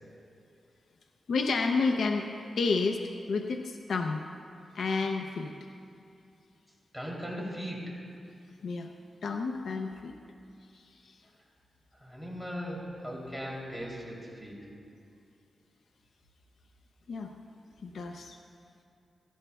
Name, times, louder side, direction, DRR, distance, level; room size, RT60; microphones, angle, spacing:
voice 1, 1.3-2.3 2.6-3.0 3.3-4.3 4.7-5.5 8.6-8.9 9.2-10.2 10.7-11.2 17.1-17.3 17.8-18.4, left 4 dB, 75° left, 3 dB, 0.6 m, -30 dB
voice 2, 6.9-7.9 12.0-14.5, equal, 5° left, -3 dB, 3.0 m, -38 dB
17.5 x 14.5 x 2.3 m, 2.5 s
cardioid pair, 80°, 0 cm